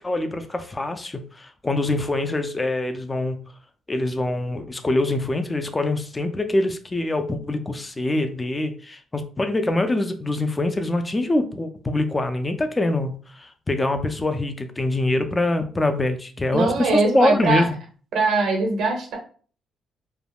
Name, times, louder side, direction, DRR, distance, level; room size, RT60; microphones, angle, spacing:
voice 1, 0.0-3.4 3.9-17.7, left 2 dB, 20° left, 8 dB, 0.4 m, -24 dB
voice 2, 16.5-17.6 18.1-19.2, right 3 dB, 80° right, 1 dB, 0.9 m, -21 dB
3.4 x 2.1 x 2.3 m, 0.41 s
cardioid pair, 115°, 0 cm